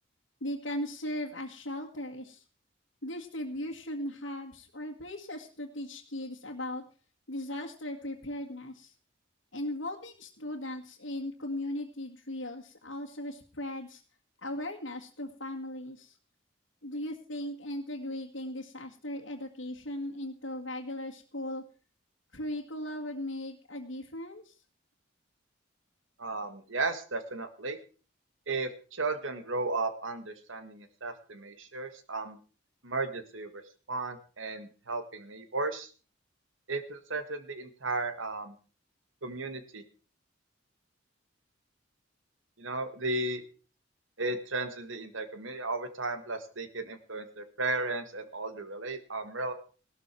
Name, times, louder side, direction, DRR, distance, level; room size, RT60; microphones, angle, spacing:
voice 1, 0.4-2.4 3.0-6.8 7.3-8.9 9.5-14.0 14.4-16.2 16.8-21.6 22.3-24.5, left 1 dB, 75° left, -1 dB, 1.9 m, -38 dB
voice 2, 26.2-27.8 28.5-32.4 32.8-33.6 33.9-35.9 36.7-38.6 39.2-39.8 42.6-43.4 44.2-49.5, right 3 dB, 80° right, 9 dB, 2.0 m, -35 dB
16.5 x 13.0 x 4.6 m, 0.37 s
head